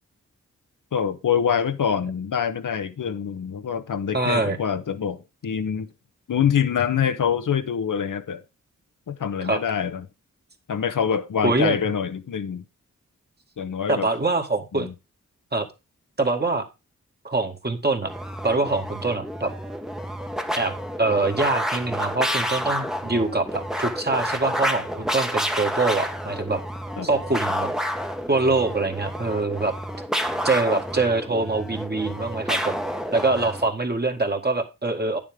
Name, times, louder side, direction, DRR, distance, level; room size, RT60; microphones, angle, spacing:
voice 1, 0.9-5.9 6.3-8.4 9.1-10.1 10.7-12.6 13.6-14.1 14.7-14.9 27.0-27.1, left 7 dB, 70° left, 1.0 m, -25 dB
voice 2, 4.1-4.6 9.4-9.6 11.4-11.8 13.9-14.9 15.5-15.7 16.2-16.6 17.2-18.1 18.4-19.5 20.6-20.7 21.0-26.6 27.0-27.7 28.3-29.7 30.4-32.7 33.1-35.2, right 3 dB, 30° right, 1.9 m, -24 dB
sound 1, 18.0-33.7, equal, ahead, 1.2 m, -29 dB
9.1 x 7.2 x 3.6 m
cardioid pair, 50°, 33 cm